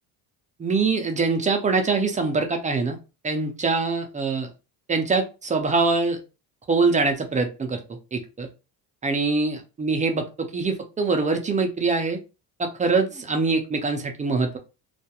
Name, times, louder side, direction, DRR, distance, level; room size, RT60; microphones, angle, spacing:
voice 1, 0.6-3.0 3.2-4.5 4.9-6.2 6.7-7.8 8.1-8.5 9.0-12.2 12.6-14.6, right 4 dB, 20° right, 4 dB, 0.3 m, -23 dB
2.3 x 2.1 x 2.8 m, 0.30 s
cardioid pair, 120°, 39 cm